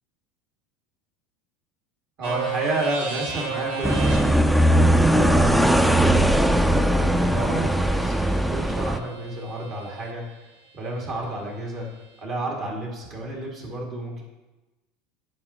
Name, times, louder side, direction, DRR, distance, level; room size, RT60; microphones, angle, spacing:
voice 1, 2.2-6.7 7.1-10.5 10.7-11.9 12.2-14.2, right 2 dB, 50° right, -1 dB, 2.0 m, -31 dB
sound 1, 2.2-10.1, right 5 dB, 70° right, 1.3 m, -35 dB
sound 2, 3.8-9.0, right 1 dB, 5° right, 0.4 m, -19 dB
10.5 x 5.0 x 2.8 m, 1.1 s
hypercardioid pair, 75°, 0 cm